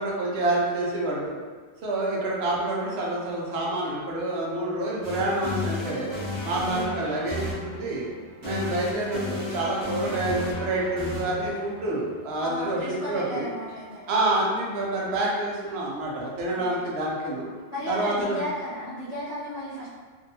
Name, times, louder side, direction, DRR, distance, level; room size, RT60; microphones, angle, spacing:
voice 1, 0.0-1.3 1.8-6.1 6.4-8.1 8.4-13.5 14.1-17.5 17.9-18.4, right 2 dB, 65° right, -4 dB, 0.8 m, -27 dB
sound 1, 5.0-12.9, left 2 dB, 25° right, 0.9 m, -34 dB
voice 2, 12.4-14.1 16.5-16.9 17.7-19.9, equal, 40° left, -12 dB, 0.7 m, -34 dB
2.6 x 2.2 x 2.7 m, 1.5 s
omnidirectional pair, 1.2 m